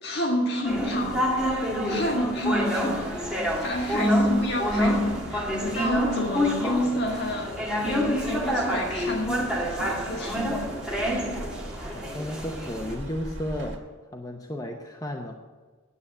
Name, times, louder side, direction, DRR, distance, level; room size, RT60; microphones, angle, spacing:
voice 1, 0.0-7.6 7.8-10.7, equal, 55° left, 1 dB, 1.6 m, -30 dB
sound 1, 0.7-12.9, equal, 5° right, 1.8 m, -27 dB
sound 2, 2.7-13.8, right 1 dB, 60° right, 2.0 m, -42 dB
voice 2, 11.9-13.9 14.1-15.3, left 1 dB, 15° left, 2 dB, 0.7 m, -33 dB
9.6 x 8.2 x 8.7 m, 1.4 s
head